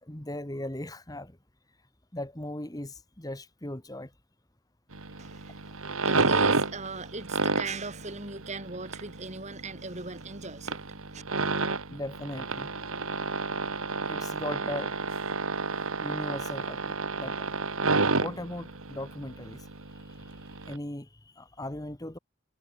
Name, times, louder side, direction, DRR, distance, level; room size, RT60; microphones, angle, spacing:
voice 1, 0.0-1.4 2.1-4.1 5.7-5.8 11.9-12.7 14.1-15.0 16.0-17.4 18.2-22.2, left 1 dB, 20° left, 1.5 m, -38 dB
sound 1, 4.9-20.8, right 3 dB, 90° right, 2.3 m, -30 dB
voice 2, 5.2-5.6 6.0-10.8 11.1-11.2, right 3 dB, 35° right, 2.4 m, -39 dB
head